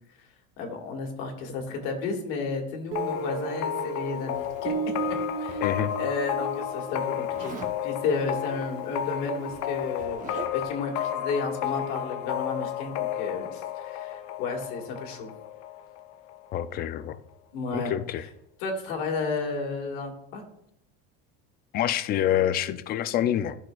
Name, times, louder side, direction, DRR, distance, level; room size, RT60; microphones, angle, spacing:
voice 1, 0.6-4.7 5.4-5.6 6.0-7.6 7.8-15.3 17.5-17.9 18.6-20.4, left 4 dB, 85° left, 2 dB, 1.9 m, -32 dB
sound 1, 2.9-16.5, left 12 dB, 55° left, 0.7 m, -33 dB
Guitar, 2.9-9.6, right 6 dB, 80° right, 0.9 m, -36 dB
Zipper (clothing), 4.3-6.0 7.3-7.8 8.9-9.0 9.3-10.8, right 4 dB, 25° right, 0.9 m, -43 dB
voice 2, 5.6-5.9 16.5-17.2 17.7-18.2 21.7-23.6, left 11 dB, 30° left, 13 dB, 0.4 m, -26 dB
12.0 x 6.1 x 2.3 m, 0.78 s
cardioid pair, 150°, 31 cm